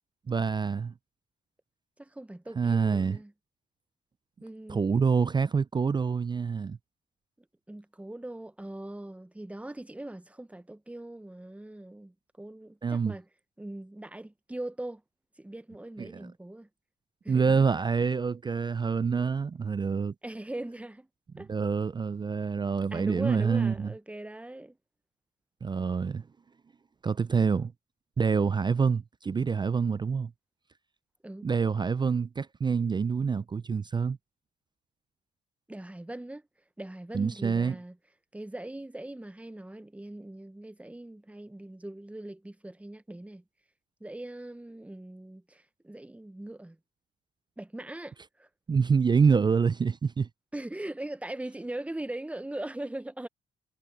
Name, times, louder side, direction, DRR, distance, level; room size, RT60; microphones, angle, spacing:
voice 1, 0.3-0.9 2.6-3.2 4.7-6.8 12.8-13.1 16.0-16.3 17.3-20.1 21.3-23.9 25.6-26.2 27.0-27.7 28.2-30.3 31.4-34.2 37.1-37.8 48.7-50.3, right 5 dB, 25° right, 0.3 m, -26 dB
voice 2, 2.0-3.3 4.4-5.0 7.7-13.2 13.6-15.0 15.4-16.7 17.2-17.6 20.2-21.1 21.4-21.5 22.9-24.8 31.2-31.5 35.7-36.4 36.8-38.0 38.3-43.4 44.0-46.8 47.6-48.5 50.5-53.3, right 1 dB, 5° right, 0.8 m, -40 dB
cardioid pair, 90°, 20 cm